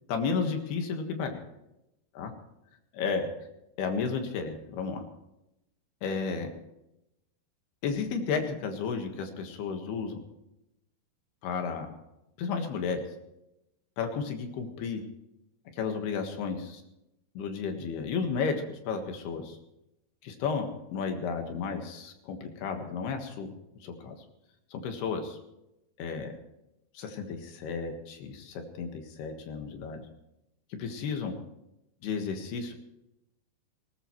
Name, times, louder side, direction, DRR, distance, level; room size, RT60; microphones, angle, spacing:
voice 1, 0.1-1.4 2.2-2.3 2.9-3.3 3.8-5.0 6.0-6.5 7.8-10.2 11.4-11.9 12.4-13.0 14.0-15.0 15.8-16.8 17.4-19.6 20.2-23.6 23.8-24.2 24.7-25.4 26.0-26.3 27.0-30.0 30.8-31.4 32.0-32.7, left 5 dB, 70° left, 5 dB, 3.4 m, -33 dB
19.5 x 19.0 x 3.2 m, 0.89 s
omnidirectional pair, 5.1 m